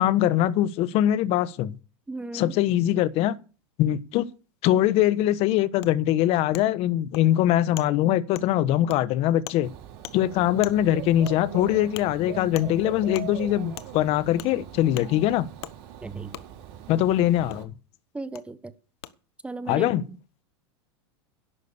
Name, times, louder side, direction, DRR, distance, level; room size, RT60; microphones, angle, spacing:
voice 1, 0.0-1.8 2.3-3.3 3.8-4.3 4.6-9.7 10.1-15.5 16.9-17.7 19.7-20.0, left 13 dB, 50° left, 1.1 m, -22 dB
voice 2, 2.1-2.5 16.0-16.4 18.1-18.7 19.4-19.9, right 3 dB, 10° right, 0.9 m, -35 dB
Wood, 5.8-5.9 6.5-6.6 7.1-7.2 7.8-7.9 8.3-8.5 8.9-9.0 9.5-9.6 10.0-10.2 10.6-10.8 11.3-11.4 11.9-12.1 12.5-12.7 13.1-13.3 13.8-13.9 14.4-14.5 14.9-15.1 15.6-15.7 16.3-16.4 17.5-17.6 18.3-18.4 19.0-19.1, left 13 dB, 75° left, 1.1 m, -39 dB
Dog / Bird, 9.6-17.6, right 11 dB, 60° right, 4.4 m, -41 dB
11.0 x 9.1 x 6.8 m
hypercardioid pair, 115°, 14 cm